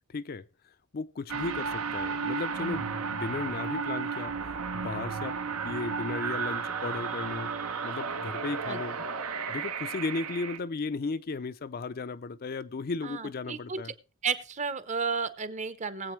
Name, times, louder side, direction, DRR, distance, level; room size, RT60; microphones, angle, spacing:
voice 1, 0.1-0.4 0.9-4.3 4.7-5.4 5.6-7.5 7.8-9.0 9.5-13.9, left 3 dB, 40° left, 0.4 m, -35 dB
sound 1, 1.3-10.6, right 5 dB, 75° right, 0.9 m, -33 dB
voice 2, 13.0-13.8 14.2-16.1, right 5 dB, 30° right, 0.8 m, -33 dB
20.0 x 8.2 x 3.1 m
head